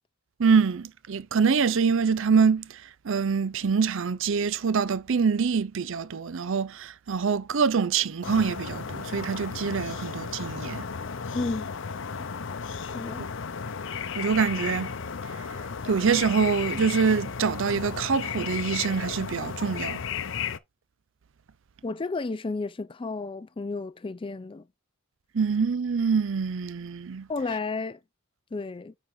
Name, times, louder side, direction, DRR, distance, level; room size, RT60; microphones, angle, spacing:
voice 1, 0.4-10.9 14.1-14.9 15.9-20.0 25.3-27.3, right 5 dB, 65° right, 0.5 m, -25 dB
sound 1, 8.2-20.6, left 6 dB, 65° left, 0.7 m, -34 dB
voice 2, 11.3-11.7 12.2-12.3 12.8-13.3 21.8-24.6 27.3-28.0 28.5-29.0, left 3 dB, 25° left, 0.4 m, -32 dB
9.6 x 4.4 x 3.8 m
head